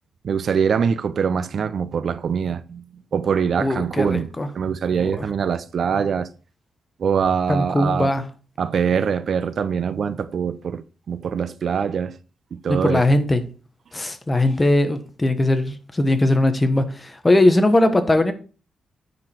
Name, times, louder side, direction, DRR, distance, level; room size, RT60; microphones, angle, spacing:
voice 1, 0.2-2.8 3.1-4.3 4.5-6.3 7.0-8.1 8.6-12.2 12.5-13.0, right 6 dB, 60° right, 0.5 m, -23 dB
voice 2, 3.6-4.5 5.0-5.3 7.5-8.2 12.7-13.4 13.9-18.3, left 1 dB, 20° left, 1.2 m, -19 dB
9.4 x 5.0 x 4.4 m
cardioid pair, 95°, 0 cm